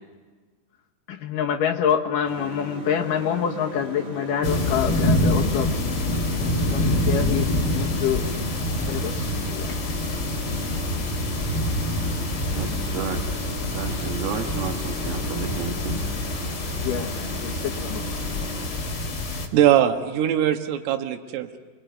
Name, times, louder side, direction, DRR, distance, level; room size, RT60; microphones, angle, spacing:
voice 1, 1.1-5.7 6.7-8.3 8.9-9.7 16.8-18.0, left 8 dB, 70° left, 1 dB, 2.1 m, -26 dB
sound 1, 2.2-18.7, right 2 dB, 20° right, 2.6 m, -37 dB
sound 2, 4.4-19.5, left 1 dB, 40° left, 1.9 m, -26 dB
voice 2, 12.5-13.3 13.7-16.0, right 6 dB, 65° right, 3 dB, 3.4 m, -32 dB
voice 3, 19.5-21.6, right 11 dB, 85° right, 6 dB, 4.0 m, -21 dB
29.0 x 21.5 x 9.4 m, 1.4 s
omnidirectional pair, 5.7 m